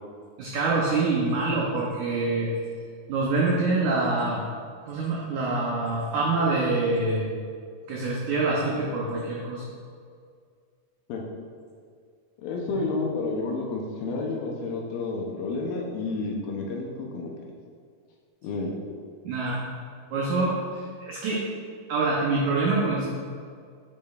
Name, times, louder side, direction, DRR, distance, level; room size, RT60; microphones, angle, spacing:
voice 1, 0.4-2.5 3.1-4.5 4.9-7.3 7.9-9.6 19.2-19.6 20.1-21.4 21.9-23.0, right 3 dB, 85° right, -4 dB, 1.7 m, -25 dB
voice 2, 12.4-17.3 18.4-18.8, left 3 dB, 75° left, 0 dB, 2.3 m, -30 dB
8.3 x 6.4 x 2.4 m, 2.1 s
omnidirectional pair, 4.5 m